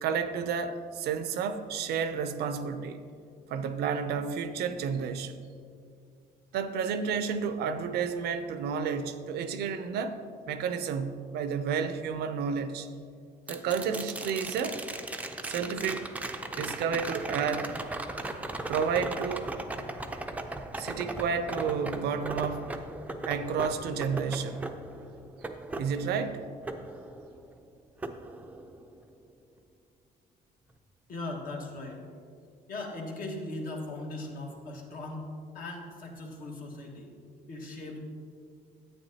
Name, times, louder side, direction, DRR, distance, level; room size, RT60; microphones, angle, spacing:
voice 1, 0.0-3.0 3.5-5.4 6.5-10.2 10.5-12.9 13.5-14.8 15.4-16.1 16.6-17.8 18.7-19.6 20.8-22.8 23.2-24.7 25.8-26.4, right 6 dB, 70° right, 10 dB, 0.6 m, -31 dB
sound 1, 13.5-27.6 28.0-29.0 31.3-31.4, right 2 dB, 10° right, 0.5 m, -38 dB
voice 2, 31.1-32.0 32.7-37.1 37.5-38.0, left 2 dB, 55° left, 0 dB, 1.6 m, -39 dB
10.0 x 8.5 x 2.8 m, 2.3 s
cardioid pair, 110°, 17 cm